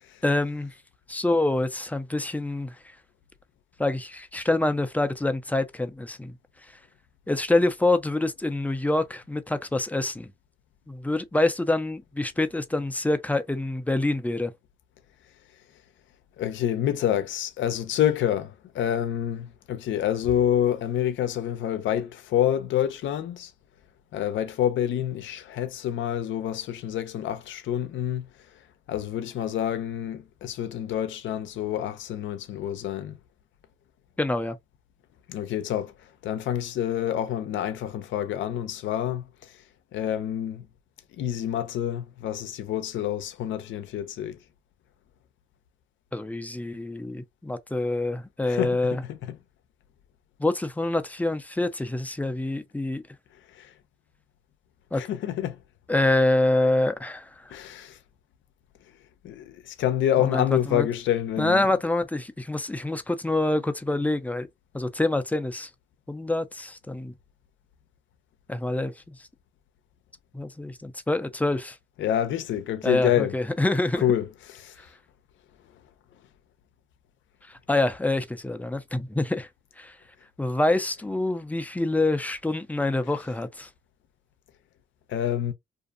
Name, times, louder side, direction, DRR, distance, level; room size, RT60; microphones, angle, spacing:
voice 1, 0.2-0.7 1.1-2.8 3.8-6.3 7.3-10.3 10.9-14.5 34.2-34.6 46.1-49.0 50.4-53.0 54.9-55.0 55.9-57.6 60.2-60.9 61.4-64.5 64.7-65.7 66.1-67.1 68.5-68.9 70.3-71.8 72.8-74.0 77.5-79.5 79.8-80.0 80.4-83.7, left 2 dB, 10° left, 0.4 m, -26 dB
voice 2, 16.4-23.5 24.1-28.3 28.9-33.2 35.3-35.9 36.2-39.5 39.9-40.7 41.2-44.4 48.5-49.4 53.6-53.7 55.0-55.6 57.5-58.0 59.2-61.7 72.0-73.3 74.0-74.7 85.1-85.5, left 10 dB, 75° left, 0.6 m, -27 dB
2.6 x 2.5 x 2.4 m
cardioid pair, 90°, 20 cm